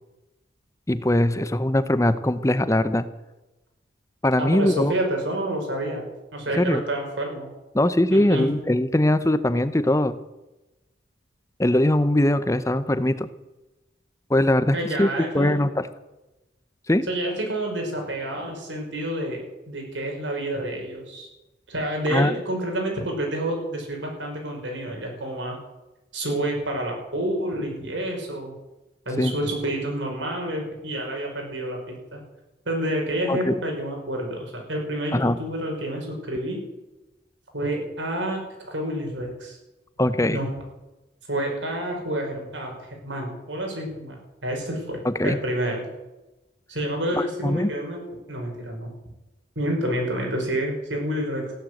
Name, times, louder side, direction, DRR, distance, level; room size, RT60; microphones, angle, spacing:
voice 1, 0.9-3.0 4.2-4.9 6.6-6.8 7.7-10.1 11.6-13.3 14.3-15.1 15.3-15.9 16.9-17.0 22.1-22.3 29.2-29.4 33.3-33.5 35.1-35.4 40.0-40.4 45.0-45.4 47.4-47.7, left 1 dB, 15° left, 13 dB, 0.7 m, -21 dB
voice 2, 4.4-6.1 6.3-7.5 8.1-8.5 14.7-15.6 17.1-21.3 21.7-25.6 26.1-28.5 29.1-32.2 32.7-36.6 37.5-39.6 40.3-40.5 41.3-44.2 44.4-45.9 46.7-48.0 48.3-48.9 49.6-51.5, right 1 dB, 80° right, 1 dB, 5.8 m, -29 dB
15.5 x 11.5 x 7.9 m, 1.0 s
head